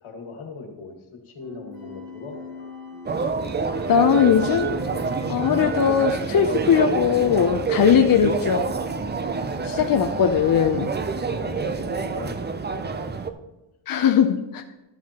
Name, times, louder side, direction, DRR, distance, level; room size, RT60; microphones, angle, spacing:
voice 1, 0.0-2.4 7.9-8.2 11.3-13.2 14.0-14.1, left 3 dB, 75° left, 2 dB, 1.8 m, -39 dB
sound 1, 1.4-13.1, left 2 dB, 45° right, 2.3 m, -42 dB
Wind instrument woodwind instrument, 1.7-7.5, right 6 dB, 85° right, 3.1 m, -43 dB
sound 2, 3.0-13.3, right 5 dB, 25° right, 0.4 m, -28 dB
voice 2, 3.9-4.8 5.3-8.7 9.6-11.0 13.9-14.6, left 7 dB, 45° left, 5 dB, 0.5 m, -19 dB
12.5 x 7.4 x 2.9 m, 0.99 s
wide cardioid pair, 125°, 48 cm